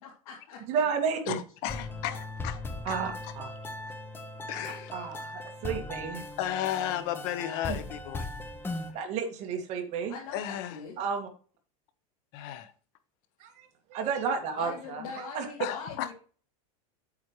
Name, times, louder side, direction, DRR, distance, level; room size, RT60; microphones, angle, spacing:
voice 1, 0.0-0.8 10.1-11.0 14.5-16.1, left 5 dB, 75° left, 2.9 m, -42 dB
voice 2, 0.7-1.4 2.8-3.5 4.9-6.2 7.7-7.8 8.9-10.2 11.0-11.3 13.4-15.5, right 6 dB, 40° right, 2.2 m, -32 dB
voice 3, 1.3-2.9 4.5-4.9 6.4-8.3 10.3-10.8 12.3-12.7 15.6-16.1, left 12 dB, 50° left, 1.2 m, -34 dB
sound 1, 1.7-8.9, left 2 dB, 10° left, 1.0 m, -38 dB
8.7 x 8.1 x 3.2 m
supercardioid pair, 155°, 18 cm